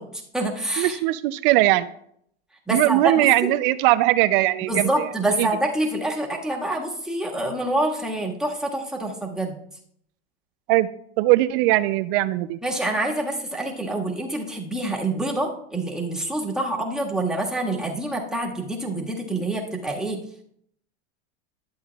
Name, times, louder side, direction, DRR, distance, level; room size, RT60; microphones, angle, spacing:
voice 1, 0.0-1.0 2.7-3.5 4.7-9.6 12.6-20.2, right 1 dB, ahead, -2 dB, 1.6 m, -26 dB
voice 2, 0.8-1.9 2.7-5.1 5.4-5.5 10.7-10.9 11.2-12.6, right 17 dB, 55° right, 14 dB, 0.5 m, -20 dB
12.0 x 7.8 x 2.3 m, 0.68 s
hypercardioid pair, 110°, 33 cm